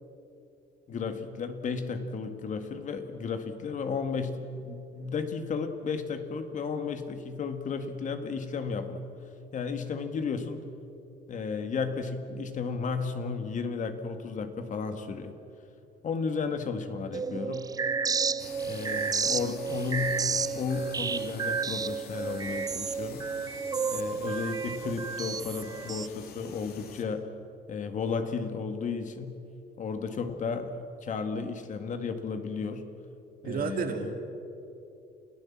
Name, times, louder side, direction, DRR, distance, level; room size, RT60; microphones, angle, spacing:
voice 1, 0.9-9.1 9.5-10.7 11.3-15.4 16.0-17.7 18.6-20.2 20.5-23.2 23.9-27.3 27.7-29.4 29.8-32.9 33.4-34.1, left 5 dB, 50° left, 8 dB, 1.9 m, -33 dB
sound 1, 17.1-26.1, right 5 dB, 20° right, 0.4 m, -31 dB
sound 2, 18.4-27.0, left 6 dB, 70° left, 2.5 m, -47 dB
voice 2, 33.5-34.2, right 6 dB, 60° right, 5 dB, 2.6 m, -31 dB
28.5 x 15.5 x 7.4 m, 2.7 s
cardioid pair, 110°, 17 cm